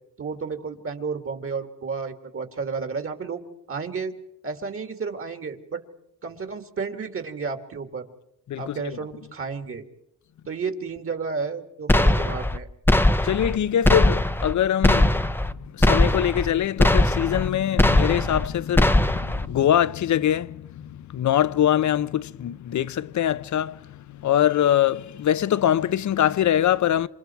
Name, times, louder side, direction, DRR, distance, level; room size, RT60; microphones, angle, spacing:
voice 1, 0.2-4.1 4.4-5.8 6.2-8.1 8.6-9.8 10.5-12.7, right 5 dB, 40° right, 2.6 m, -32 dB
sound 1, 11.9-12.6 12.9-13.6 13.9-14.5 14.8-15.5 15.8-16.5 16.8-17.5 17.8-18.5 18.8-19.5, left 1 dB, 5° left, 0.9 m, -20 dB
voice 2, 13.2-27.1, left 11 dB, 60° left, 0.8 m, -23 dB
28.0 x 26.5 x 4.7 m
cardioid pair, 95°, 33 cm